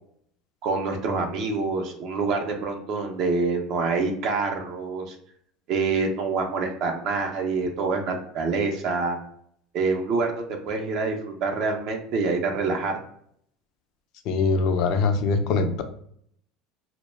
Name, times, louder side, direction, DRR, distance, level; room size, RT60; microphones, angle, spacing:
voice 1, 0.6-5.1 5.7-9.2 9.7-13.0, right 4 dB, 60° right, 3 dB, 0.5 m, -26 dB
voice 2, 14.3-15.8, left 4 dB, 60° left, 7 dB, 0.4 m, -22 dB
2.2 x 2.0 x 3.1 m, 0.66 s
supercardioid pair, 100°, 0 cm